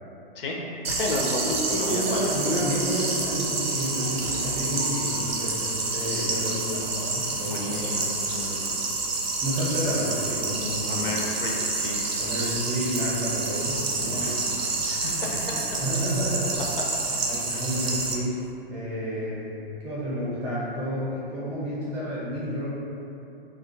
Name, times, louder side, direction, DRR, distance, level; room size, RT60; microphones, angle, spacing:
sound 1, 0.8-18.1, right 3 dB, 85° right, 0.5 m, -28 dB
voice 1, 0.9-2.3 7.5-8.8 10.8-12.5 14.0-15.7 16.8-16.9 17.5-17.7, left 2 dB, 65° left, -1 dB, 0.5 m, -33 dB
voice 2, 1.4-7.9 8.3-8.6 9.4-11.3 12.2-14.3 15.1-16.6 17.3-18.4 18.7-19.5 19.8-22.7, equal, 20° right, -8 dB, 0.6 m, -30 dB
2.4 x 2.3 x 2.5 m, 2.8 s
hypercardioid pair, 120°, 30 cm